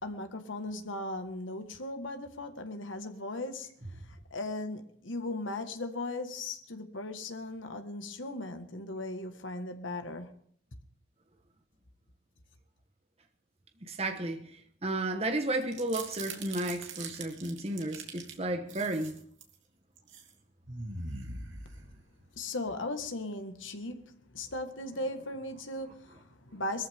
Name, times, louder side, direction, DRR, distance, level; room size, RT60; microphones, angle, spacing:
voice 1, 0.0-3.7 4.1-10.4 22.4-26.9, left 2 dB, 90° left, 1.7 m, -38 dB
voice 2, 13.8-19.1, right 2 dB, 30° right, 1.2 m, -33 dB
sound 1, 15.6-18.3 18.7-19.5 20.0-20.3 20.6-22.3, right 3 dB, 85° right, 2.8 m, -42 dB
21.0 x 14.0 x 3.6 m
head